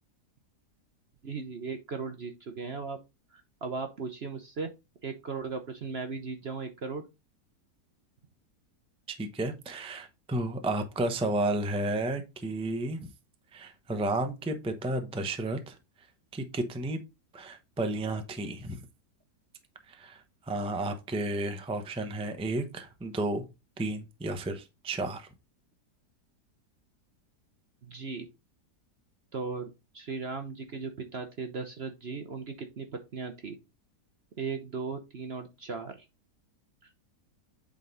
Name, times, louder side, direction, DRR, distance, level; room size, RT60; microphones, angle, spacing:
voice 1, 1.2-3.0 3.3-4.7 5.0-7.0 27.8-28.3 29.3-32.9 33.1-33.6 34.4-36.0, right 4 dB, 50° right, 0.9 m, -37 dB
voice 2, 9.1-13.1 13.5-15.8 16.3-17.0 17.3-18.8 19.9-23.4 23.8-25.3, right 2 dB, 5° right, 0.6 m, -32 dB
8.3 x 3.8 x 4.0 m
omnidirectional pair, 1.7 m